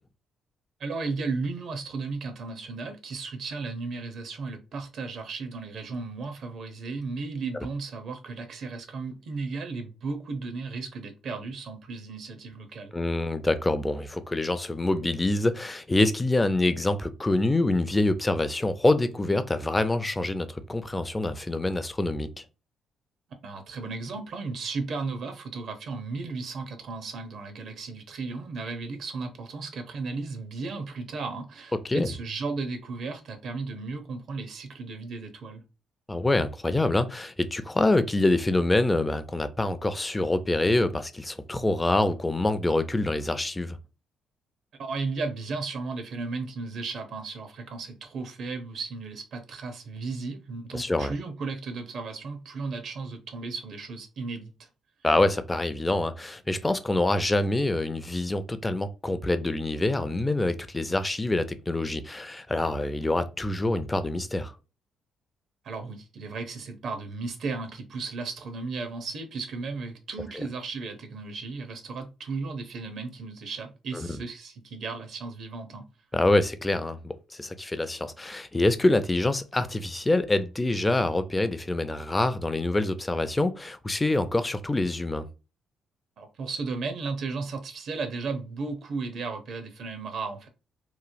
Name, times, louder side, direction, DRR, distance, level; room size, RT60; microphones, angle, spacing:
voice 1, 0.8-12.9 23.4-35.6 44.8-54.7 65.6-75.9 86.2-90.5, right 4 dB, 65° right, 0.7 m, -35 dB
voice 2, 12.9-22.4 31.8-32.1 36.1-43.8 50.7-51.1 55.0-64.5 73.9-74.1 76.1-85.3, left 2 dB, 15° left, 0.4 m, -26 dB
3.0 x 2.1 x 2.5 m
cardioid pair, 90°, 0 cm